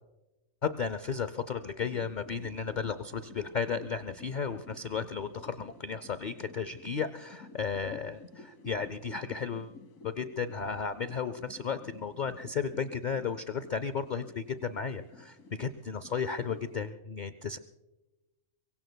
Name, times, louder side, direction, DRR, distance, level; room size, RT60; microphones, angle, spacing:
voice 1, 0.6-9.7 10.0-17.6, left 6 dB, 60° left, 13 dB, 0.5 m, -34 dB
sound 1, 1.8-16.9, left 3 dB, 80° left, 1.6 m, -52 dB
24.0 x 23.0 x 2.2 m, 1.1 s
omnidirectional pair, 1.4 m